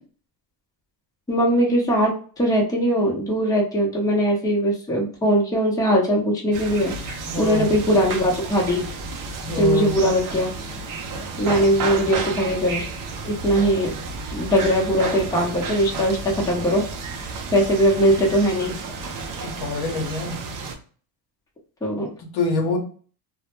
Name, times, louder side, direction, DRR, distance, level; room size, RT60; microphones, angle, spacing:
voice 1, 1.3-8.8 9.6-10.5 11.4-12.9 13.2-13.9 14.3-16.8 17.5-18.7 21.8-22.1, equal, 10° left, -2 dB, 0.7 m, -20 dB
sound 1, 6.5-20.8, right 4 dB, 45° right, 0.5 m, -32 dB
voice 2, 7.3-7.7 9.4-10.0 19.4-20.4 22.0-22.8, left 3 dB, 55° left, 2 dB, 0.8 m, -26 dB
2.1 x 2.0 x 2.9 m, 0.42 s
cardioid pair, 100°, 46 cm